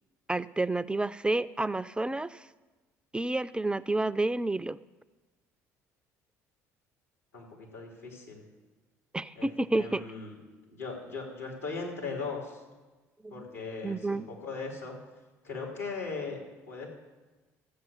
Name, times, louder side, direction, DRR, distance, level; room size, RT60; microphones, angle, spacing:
voice 1, 0.3-2.5 3.1-4.8 9.1-10.0 13.2-13.3 13.8-14.3, right 2 dB, 10° right, 15 dB, 0.4 m, -30 dB
voice 2, 7.3-8.4 9.3-9.5 9.7-10.4 10.7-12.6 13.3-15.0 15.4-16.4 16.7-16.9, left 4 dB, 85° left, -1 dB, 3.2 m, -38 dB
14.0 x 7.8 x 6.9 m, 1.2 s
hypercardioid pair, 55°, 8 cm